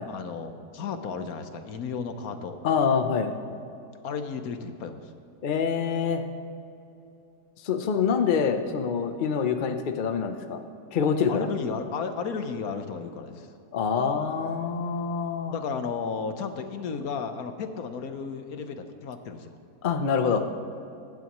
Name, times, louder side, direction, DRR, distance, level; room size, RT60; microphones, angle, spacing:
voice 1, 0.1-2.6 4.0-5.1 11.3-13.5 15.5-19.6, left 5 dB, 65° left, 8 dB, 1.3 m, -33 dB
voice 2, 2.6-3.3 5.4-6.2 7.6-10.6 10.9-11.5 13.7-15.5 19.8-20.5, left 6 dB, 45° left, 6 dB, 0.6 m, -25 dB
22.5 x 10.5 x 3.1 m, 2.7 s
omnidirectional pair, 1.8 m